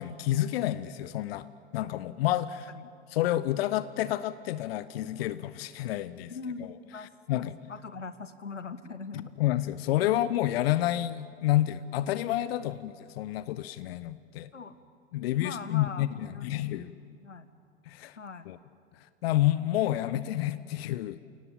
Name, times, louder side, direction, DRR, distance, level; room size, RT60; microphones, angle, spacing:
voice 1, 0.0-1.5 1.7-2.7 3.1-6.3 6.6-6.7 7.3-7.6 9.4-14.5 15.1-16.9 17.9-18.2 18.5-18.6 19.2-21.2, left 14 dB, 55° left, 16 dB, 0.8 m, -29 dB
voice 2, 6.3-9.3 12.6-12.8 14.5-14.8 15.4-16.1 16.3-17.5 18.2-18.5, left 4 dB, 85° left, 14 dB, 1.2 m, -42 dB
30.0 x 18.0 x 8.6 m, 2.3 s
figure-of-eight pair, 80°, 36 cm